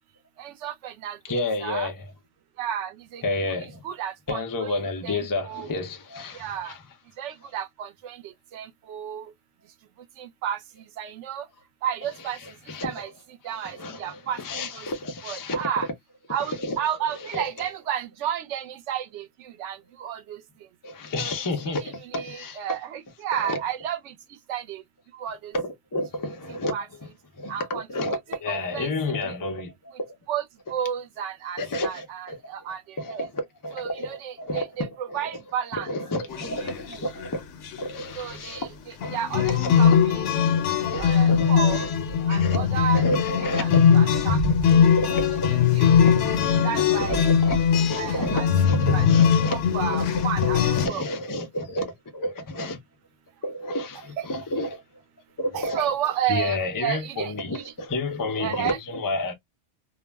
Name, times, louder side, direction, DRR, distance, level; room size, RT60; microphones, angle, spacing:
voice 1, 0.4-1.9 2.6-3.2 3.8-4.8 5.0-5.7 6.3-6.7 7.2-8.2 8.5-9.3 10.2-10.6 11.0-11.5 11.8-12.4 12.8-13.1 13.4-14.9 15.2-15.9 16.3-20.4 21.2-21.3 21.6-24.1 24.5-24.8 25.1-25.5 26.7-26.9 27.5-27.9 28.5-29.1 30.3-30.4 30.7-33.2 33.8-35.9 36.5-36.6 38.2-38.7 39.1-40.5 41.0-41.9 42.3-43.0 43.4-44.4 44.7-44.9 45.7-45.9 46.5-47.3 48.0-48.5 48.9-50.6 50.9-51.0 55.5-57.6 58.4-58.8, right 9 dB, 80° right, 0.9 m, -32 dB
voice 2, 1.2-2.0 3.2-3.8 4.3-6.8 12.4-13.1 13.5-15.7 16.4-16.8 17.3-17.7 20.8-22.8 23.3-23.6 25.5-26.8 27.4-30.2 31.6-32.4 33.0-35.3 35.9-37.4 37.8-38.7 39.0-39.2 39.5-40.0 40.8-43.8 44.3-44.4 44.8-45.5 46.0-50.3 50.6-52.8 53.4-54.8 55.4-55.9 56.3-59.3, left 2 dB, 25° left, 0.4 m, -31 dB
sound 1, 36.3-36.9 37.2-37.3 37.7-37.9 39.0-50.9, left 7 dB, 85° left, 1.0 m, -20 dB
2.4 x 2.0 x 3.3 m
omnidirectional pair, 1.2 m